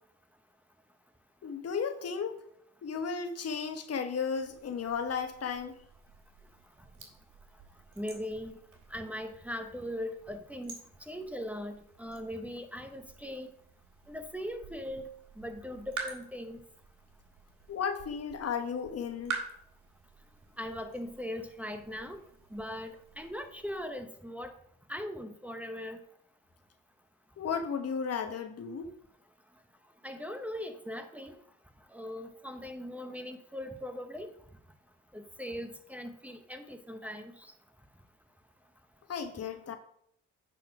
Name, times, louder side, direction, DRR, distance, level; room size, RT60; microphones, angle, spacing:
voice 1, 1.4-2.4 2.8-5.8 17.7-19.4 27.4-28.9 39.1-39.8, left 6 dB, 55° left, 8 dB, 1.2 m, -34 dB
sound 1, 4.3-23.9, right 5 dB, 70° right, 2.5 m, -48 dB
voice 2, 8.0-8.5 8.9-10.7 11.1-13.5 14.1-15.0 15.4-16.6 20.6-22.2 22.5-24.5 24.9-26.0 30.0-31.3 31.9-34.3 35.1-37.5, left 1 dB, 5° right, 5 dB, 0.9 m, -40 dB
9.1 x 4.2 x 5.9 m, 0.69 s
cardioid pair, 90°, 30 cm